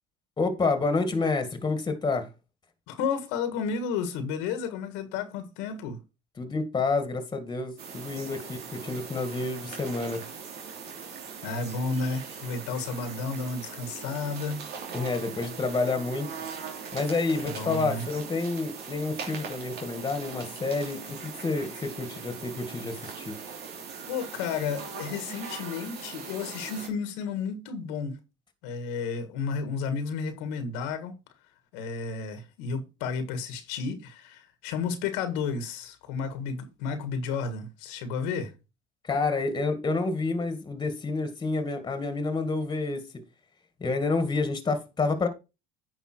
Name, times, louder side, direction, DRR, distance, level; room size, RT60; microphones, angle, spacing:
voice 1, 0.4-2.3 6.4-10.2 14.9-16.3 16.9-23.3 39.0-43.1 43.8-45.3, left 3 dB, 25° left, 2.1 m, -29 dB
voice 2, 2.9-6.0 11.0-11.1 11.4-14.7 17.4-18.1 24.1-28.2 28.6-31.2 31.7-38.5, left 5 dB, 85° left, 1.8 m, -32 dB
sound 1, 7.8-26.9, right 6 dB, 60° right, 2.9 m, -40 dB
9.4 x 5.5 x 4.5 m
supercardioid pair, 100°, 18 cm